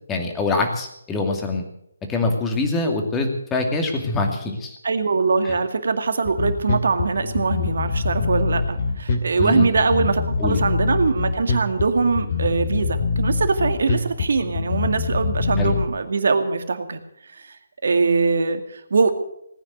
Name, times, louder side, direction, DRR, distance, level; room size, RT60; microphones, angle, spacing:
voice 1, 0.1-1.6 2.1-4.8 5.4-5.5 9.4-9.7 10.4-10.6 15.6-15.7, left 2 dB, 10° left, 3 dB, 2.4 m, -24 dB
voice 2, 4.8-17.0 17.4-17.6 17.8-19.2, right 4 dB, 60° right, 7 dB, 2.2 m, -22 dB
Bass guitar, 6.2-15.8, left 4 dB, 40° left, 2.7 m, -24 dB
18.5 x 9.7 x 7.9 m, 0.77 s
figure-of-eight pair, 150°, 0 cm